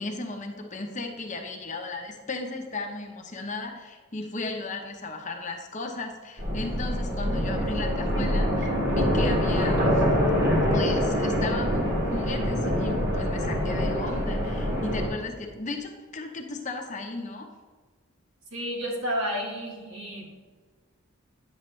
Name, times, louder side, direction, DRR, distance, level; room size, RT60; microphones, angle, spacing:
voice 1, 0.0-10.1 10.7-17.5, left 3 dB, 35° left, 3 dB, 0.9 m, -35 dB
sound 1, 6.4-15.1, equal, 50° right, 2.4 m, -25 dB
voice 2, 18.5-20.4, equal, 70° right, -1 dB, 2.0 m, -31 dB
10.5 x 7.2 x 3.2 m, 1.5 s
head